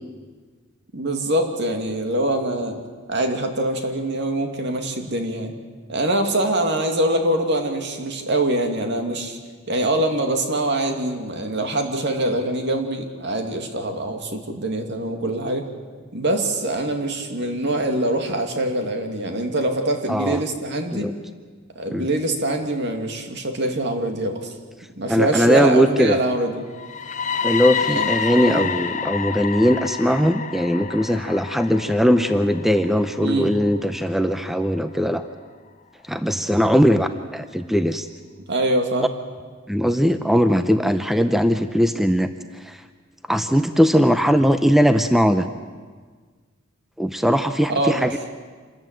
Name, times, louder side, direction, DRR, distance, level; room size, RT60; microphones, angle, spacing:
voice 1, 0.9-2.8 3.1-5.5 5.9-9.4 9.7-15.7 16.1-21.1 21.7-24.5 25.0-26.7 27.9-28.7 33.2-33.5 38.5-39.1 47.7-48.3, right 1 dB, 60° right, 4 dB, 2.5 m, -24 dB
voice 2, 20.1-20.4 20.9-21.1 21.9-22.1 25.1-26.2 27.4-35.2 36.0-38.1 39.0-39.1 39.7-42.8 43.3-45.5 47.0-48.2, equal, ahead, 9 dB, 0.6 m, -19 dB
sound 1, 26.7-34.6, left 6 dB, 40° left, 1.0 m, -29 dB
26.5 x 14.0 x 9.2 m, 1.5 s
head